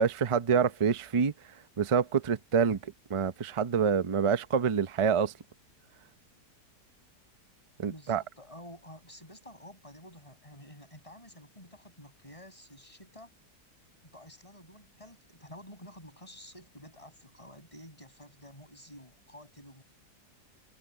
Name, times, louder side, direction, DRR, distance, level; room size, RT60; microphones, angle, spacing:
voice 1, 0.0-1.3 1.8-5.3 7.8-8.2, right 6 dB, 55° right, 0.3 m, -27 dB
voice 2, 7.9-13.3 14.0-19.8, left 1 dB, 20° left, 7.8 m, -50 dB
omnidirectional pair, 1.7 m